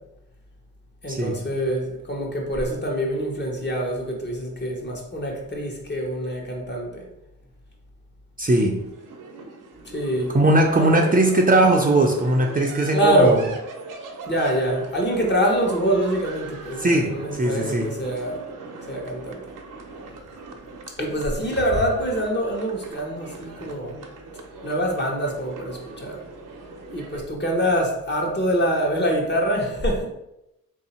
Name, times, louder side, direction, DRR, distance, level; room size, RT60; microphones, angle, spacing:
voice 1, 1.0-7.0 9.9-10.4 10.8-11.2 12.9-13.4 14.3-18.4 18.9-19.4 21.0-24.0 24.6-26.2 26.9-30.1, right 1 dB, 35° left, -1 dB, 1.1 m, -24 dB
voice 2, 8.4-8.7 10.3-13.4 16.8-17.9, right 2 dB, 25° right, 1 dB, 0.6 m, -19 dB
sound 1, 8.8-27.2, right 3 dB, 85° right, 0.7 m, -40 dB
3.2 x 2.7 x 4.3 m, 0.86 s
cardioid pair, 80°, 31 cm